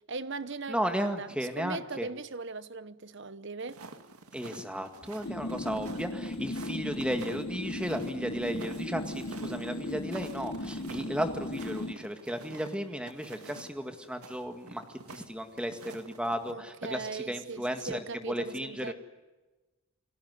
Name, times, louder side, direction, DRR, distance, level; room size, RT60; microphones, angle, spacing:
voice 1, 0.1-3.8 16.5-18.9, right 4 dB, 55° right, 1.0 m, -39 dB
voice 2, 0.7-2.1 4.3-14.8 15.1-18.0 18.2-18.9, equal, 5° right, 1.9 m, -34 dB
sound 1, 3.7-16.5, right 3 dB, 90° right, 2.1 m, -49 dB
sound 2, 5.2-11.9, left 1 dB, 50° left, 1.1 m, -37 dB
29.5 x 18.0 x 9.6 m
head